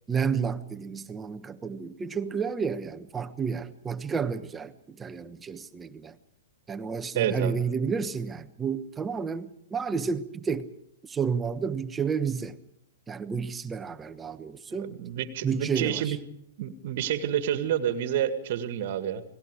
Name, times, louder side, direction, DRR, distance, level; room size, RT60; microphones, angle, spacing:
voice 1, 0.1-6.1 6.7-10.7 11.0-12.6 13.1-15.0 15.4-16.2, right 6 dB, 15° right, 1.2 m, -31 dB
voice 2, 7.2-7.6 14.8-16.2 16.6-19.2, right 10 dB, 50° right, 1.9 m, -29 dB
29.5 x 20.0 x 4.9 m
figure-of-eight pair, 115°, 0 cm